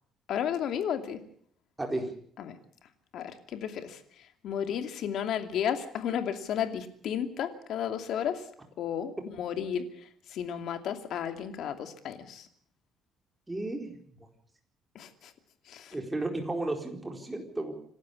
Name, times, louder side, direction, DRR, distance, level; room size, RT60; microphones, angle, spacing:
voice 1, 0.3-1.2 2.4-2.6 3.1-4.0 4.4-8.4 8.8-9.1 9.4-9.9 10.3-12.5 14.9-15.3 15.7-15.9, left 9 dB, 65° left, 8 dB, 2.6 m, -33 dB
voice 2, 1.8-2.1 13.5-13.9 15.9-17.7, right 2 dB, 10° right, 3 dB, 4.4 m, -33 dB
27.5 x 12.5 x 8.5 m, 0.62 s
cardioid pair, 135°, 0 cm